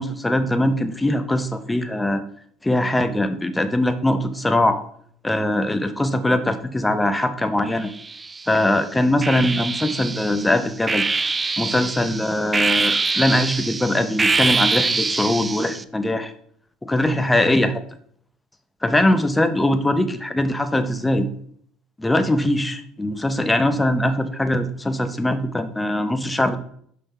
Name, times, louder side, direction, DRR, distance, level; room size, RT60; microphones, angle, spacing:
voice 1, 0.0-2.2 2.6-4.8 5.2-7.9 8.5-11.1 11.6-16.3 16.8-17.8 18.8-21.3 22.0-26.6, left 1 dB, 10° left, 9 dB, 0.8 m, -21 dB
sound 1, 7.8-8.6 9.2-15.8, right 4 dB, 20° right, 0.4 m, -24 dB
5.7 x 5.5 x 4.3 m, 0.63 s
supercardioid pair, 95°, 0 cm